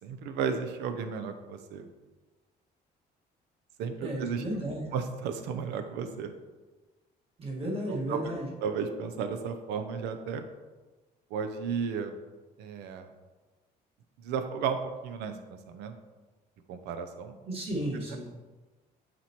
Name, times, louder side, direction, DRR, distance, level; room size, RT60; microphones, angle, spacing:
voice 1, 0.0-1.9 3.8-4.4 4.9-6.3 7.8-8.3 8.6-10.4 11.3-12.1 12.6-13.1 14.2-15.9 16.7-17.3, right 6 dB, 85° right, 8 dB, 0.6 m, -34 dB
voice 2, 4.0-4.8 7.4-8.5 17.4-18.3, right 1 dB, 35° right, -4 dB, 1.8 m, -33 dB
7.3 x 4.3 x 3.0 m, 1.2 s
cardioid pair, 110°, 17 cm